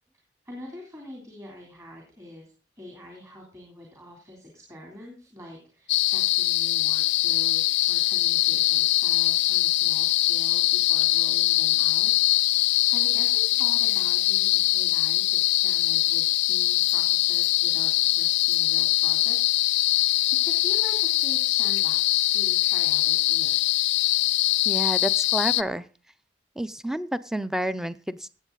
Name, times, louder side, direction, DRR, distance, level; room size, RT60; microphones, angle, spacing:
voice 1, 0.4-2.5 2.7-12.5 12.9-23.6, left 1 dB, 20° right, 0 dB, 3.4 m, -44 dB
sound 1, 5.9-25.6, left 18 dB, 80° left, 0.5 m, -22 dB
voice 2, 24.7-25.9 26.6-28.3, right 1 dB, 5° right, 14 dB, 0.5 m, -29 dB
16.0 x 8.3 x 4.0 m, 0.36 s
head